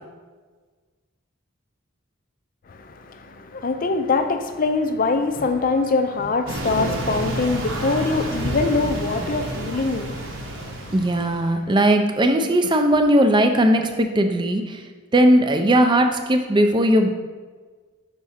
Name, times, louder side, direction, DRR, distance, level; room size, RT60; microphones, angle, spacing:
voice 1, 2.7-10.8, left 3 dB, 40° left, 8 dB, 0.4 m, -24 dB
sound 1, 6.5-11.5, right 1 dB, 65° right, 0.9 m, -29 dB
voice 2, 10.9-14.8 15.1-17.1, right 1 dB, 20° right, 6 dB, 0.4 m, -18 dB
6.0 x 4.7 x 4.2 m, 1.5 s
head